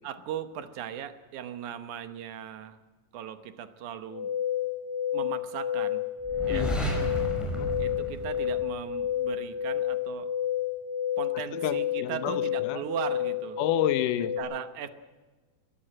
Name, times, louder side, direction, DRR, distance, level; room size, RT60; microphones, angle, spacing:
voice 1, 0.0-2.8 3.1-4.3 5.1-6.1 6.5-6.7 7.8-10.4 11.2-13.6 14.4-14.9, right 9 dB, 70° right, 11 dB, 2.4 m, -38 dB
sound 1, 4.1-14.4, left 10 dB, 45° left, 6.8 m, -30 dB
sound 2, 6.2-9.1, right 1 dB, ahead, 5.6 m, -32 dB
voice 2, 6.5-6.9 7.4-7.7 11.5-12.8 13.6-14.4, left 11 dB, 80° left, 14 dB, 2.3 m, -30 dB
22.0 x 16.5 x 7.6 m, 1.3 s
omnidirectional pair, 3.8 m